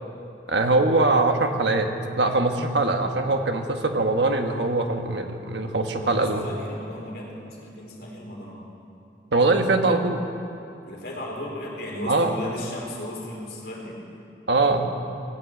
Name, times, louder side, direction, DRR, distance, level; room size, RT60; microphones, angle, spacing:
voice 1, 0.5-1.9 2.2-6.4 9.3-10.2 12.1-12.3 14.5-14.9, right 2 dB, 85° right, 5 dB, 1.4 m, -22 dB
voice 2, 6.0-8.7 10.9-14.0, left 1 dB, 65° left, -2 dB, 3.7 m, -35 dB
18.0 x 9.2 x 8.4 m, 2.8 s
head